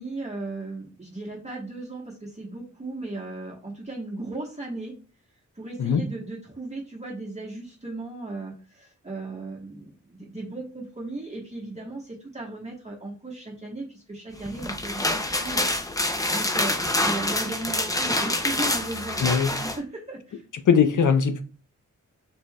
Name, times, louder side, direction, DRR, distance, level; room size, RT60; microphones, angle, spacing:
voice 1, 0.0-4.9 5.5-15.7 16.3-19.3 19.8-20.4, right 2 dB, 20° right, 1.1 m, -36 dB
sound 1, 14.5-19.8, left 1 dB, 10° left, 0.5 m, -26 dB
voice 2, 19.2-19.5 20.7-21.4, left 7 dB, 80° left, 0.6 m, -20 dB
5.1 x 4.5 x 2.2 m
wide cardioid pair, 90°, 30 cm